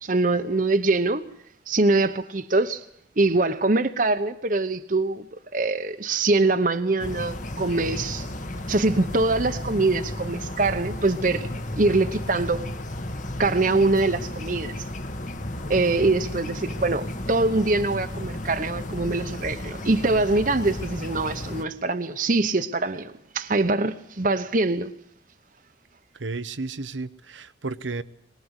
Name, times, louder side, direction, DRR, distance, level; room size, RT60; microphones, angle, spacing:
voice 1, 0.0-1.2 1.7-2.8 3.2-5.3 5.5-8.3 8.7-12.7 13.4-14.8 15.7-24.9, right 2 dB, 45° right, 0.9 m, -23 dB
sound 1, 7.0-21.6, left 1 dB, 45° left, 1.4 m, -33 dB
voice 2, 26.2-28.0, right 3 dB, 90° right, 1.0 m, -32 dB
23.0 x 20.5 x 8.1 m
head